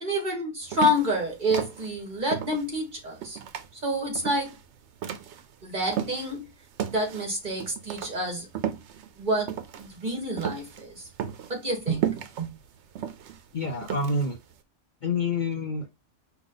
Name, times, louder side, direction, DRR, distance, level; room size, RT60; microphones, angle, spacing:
voice 1, 0.0-3.4 3.8-4.5 5.6-6.5 6.9-8.5 9.2-11.0 11.5-12.1 12.4-12.5, equal, 40° right, 1.8 m, -28 dB
sound 1, 0.7-6.4 6.8-14.5, right 9 dB, 75° right, 0.9 m, -34 dB
voice 2, 13.5-14.4 15.0-15.9, left 3 dB, 50° left, 0.6 m, -27 dB
5.1 x 2.3 x 3.8 m
omnidirectional pair, 1.2 m